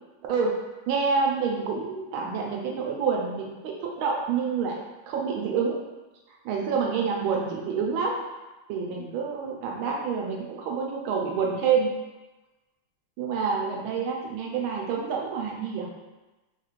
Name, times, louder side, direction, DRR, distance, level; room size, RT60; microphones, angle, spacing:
voice 1, 0.9-5.8 6.4-8.2 8.7-11.9 13.2-15.9, right 5 dB, 80° right, -1 dB, 1.4 m, -27 dB
4.0 x 3.0 x 2.4 m, 1.1 s
omnidirectional pair, 2.3 m